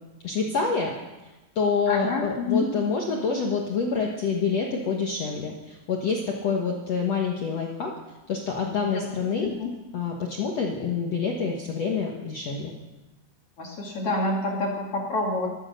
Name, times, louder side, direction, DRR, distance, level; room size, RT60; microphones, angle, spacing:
voice 1, 0.2-0.9 1.2-7.9 8.3-9.5 9.9-12.7, left 5 dB, 90° left, 0 dB, 1.4 m, -27 dB
voice 2, 1.9-2.7 8.9-9.1 9.4-9.7 13.6-15.5, left 3 dB, 45° left, -1 dB, 2.2 m, -27 dB
14.5 x 13.5 x 6.5 m, 1.1 s
omnidirectional pair, 5.2 m